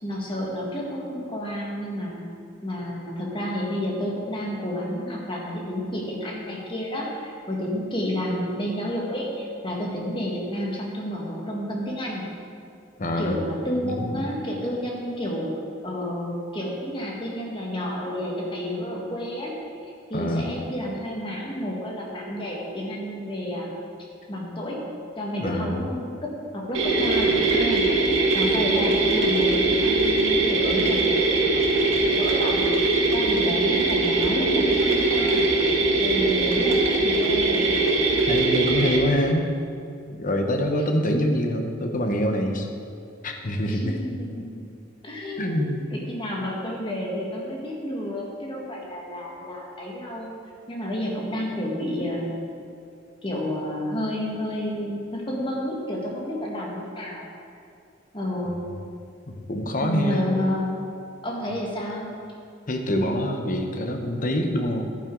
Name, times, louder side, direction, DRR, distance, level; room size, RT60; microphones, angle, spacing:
voice 1, 0.0-2.2 2.6-12.2 13.2-19.5 20.1-23.7 24.3-24.8 25.2-32.7 33.1-35.4 36.0-37.8 43.6-44.5 45.0-50.3 50.7-52.4 53.2-57.3 58.1-58.6 59.8-60.9 61.2-62.1, equal, 25° left, -2 dB, 1.7 m, -30 dB
voice 2, 13.0-13.4 13.8-14.3 20.1-20.6 25.4-25.8 38.3-39.5 40.1-42.7 43.2-44.0 45.4-45.9 58.5-58.6 59.3-60.2 62.7-64.8, equal, 45° left, 3 dB, 1.0 m, -25 dB
sound 1, 26.7-39.0, right 3 dB, 80° right, 1.7 m, -21 dB
11.0 x 9.4 x 3.9 m, 2.3 s
head